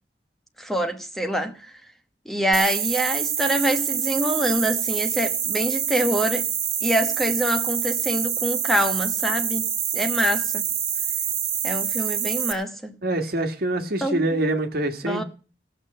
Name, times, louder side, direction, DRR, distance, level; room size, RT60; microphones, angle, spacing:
voice 1, 0.6-1.7 2.2-6.5 6.8-9.7 9.9-10.7 11.6-12.9 14.0-14.2 15.1-15.2, right 1 dB, ahead, 1.1 m, -25 dB
sound 1, 2.5-12.5, right 8 dB, 35° right, 1.9 m, -26 dB
voice 2, 13.0-15.2, right 1 dB, 60° right, 1.6 m, -25 dB
17.5 x 6.7 x 6.6 m
head